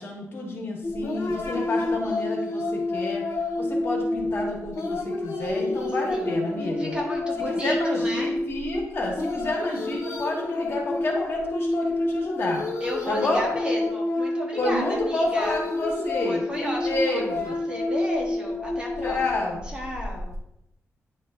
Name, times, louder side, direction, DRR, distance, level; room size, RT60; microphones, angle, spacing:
voice 1, 0.0-3.2 3.6-7.0 7.4-12.6 13.1-13.4 14.6-16.4 16.8-17.6 19.0-19.6, left 2 dB, 50° left, -2 dB, 2.0 m, -29 dB
sound 1, 0.8-20.4, left 2 dB, 70° left, 1.4 m, -29 dB
voice 2, 6.1-6.5 6.8-8.3 12.8-15.6 16.2-20.4, equal, 20° right, -2 dB, 1.4 m, -33 dB
9.9 x 5.3 x 2.7 m, 0.80 s
wide cardioid pair, 160°, 5 cm